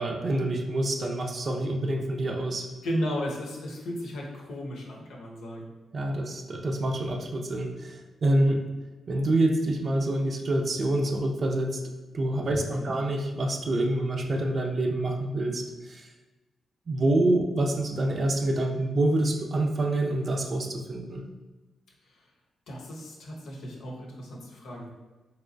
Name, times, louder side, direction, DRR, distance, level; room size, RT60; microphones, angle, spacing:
voice 1, 0.0-2.7 5.9-8.6 9.1-11.8 12.1-16.0 16.9-21.2, right 1 dB, 50° right, 2 dB, 0.5 m, -27 dB
voice 2, 2.8-5.7 12.5-12.9 22.0-22.3 22.7-24.9, equal, 85° left, -2 dB, 0.7 m, -35 dB
3.3 x 2.9 x 2.5 m, 1.2 s
supercardioid pair, 55°, 0 cm